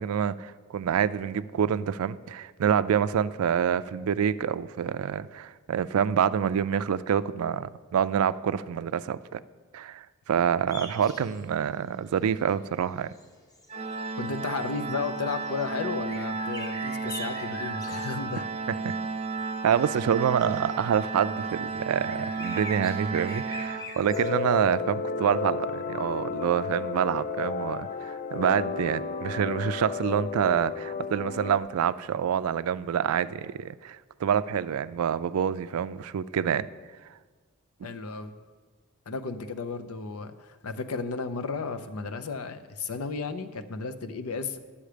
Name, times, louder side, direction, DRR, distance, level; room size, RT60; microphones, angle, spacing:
voice 1, 0.0-9.4 9.7-13.1 17.0-17.1 18.8-18.9 19.6-36.7, right 8 dB, 85° right, 15 dB, 0.3 m, -27 dB
sound 1, 10.7-11.7 12.1-12.5 13.1-13.2 13.5-15.7 16.1-18.4 18.7-21.1 21.5-24.3, left 1 dB, 15° left, 0.8 m, -44 dB
Organ, 13.7-24.4, right 4 dB, 30° right, 0.5 m, -33 dB
voice 2, 14.2-18.5 37.8-38.3 39.1-44.6, left 4 dB, 90° left, 9 dB, 0.6 m, -33 dB
sound 2, 24.0-31.6, left 4 dB, 40° left, 0.3 m, -32 dB
11.5 x 7.1 x 5.0 m, 1.5 s
head